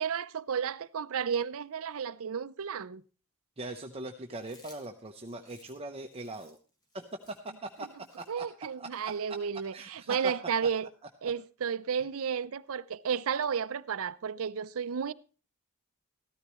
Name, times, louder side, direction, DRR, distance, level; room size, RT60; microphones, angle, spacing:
voice 1, 0.0-3.0 8.3-10.9 11.2-15.1, right 7 dB, 70° right, 0.5 m, -32 dB
voice 2, 3.6-6.6 6.9-7.4 7.6-7.9 8.2-8.5 8.8-9.1 9.7-10.3, right 2 dB, 25° right, 0.8 m, -40 dB
Chewing mastication, 4.3-9.7, left 1 dB, 20° left, 1.8 m, -61 dB
14.0 x 13.5 x 3.1 m
head